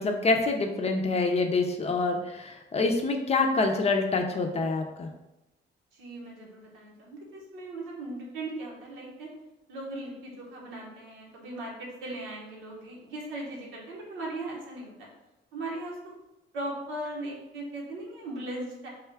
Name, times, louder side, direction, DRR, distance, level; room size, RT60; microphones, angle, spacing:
voice 1, 0.0-5.1, left 3 dB, 30° left, 3 dB, 0.5 m, -26 dB
voice 2, 5.9-9.3 9.7-15.1 15.5-16.0 16.5-18.9, right 2 dB, 90° right, -2 dB, 1.0 m, -38 dB
3.6 x 2.3 x 3.4 m, 0.95 s
cardioid pair, 90°, 20 cm